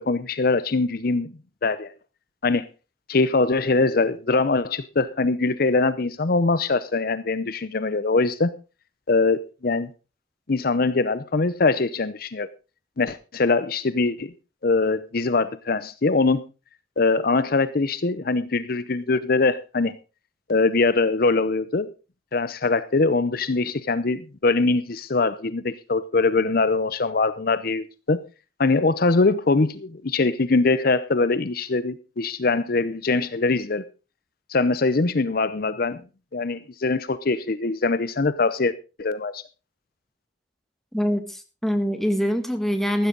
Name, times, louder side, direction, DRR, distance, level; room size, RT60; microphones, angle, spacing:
voice 1, 0.0-1.3 1.6-1.9 2.4-2.7 3.1-8.5 9.1-9.9 10.5-12.5 13.0-14.3 14.6-16.4 17.0-20.0 20.5-21.9 22.3-28.2 28.6-33.8 34.5-36.0 36.3-38.7 39.0-39.4, left 3 dB, 50° left, 0.7 m, -22 dB
voice 2, 40.9-43.1, equal, ahead, 1.7 m, -24 dB
14.5 x 12.5 x 3.9 m
head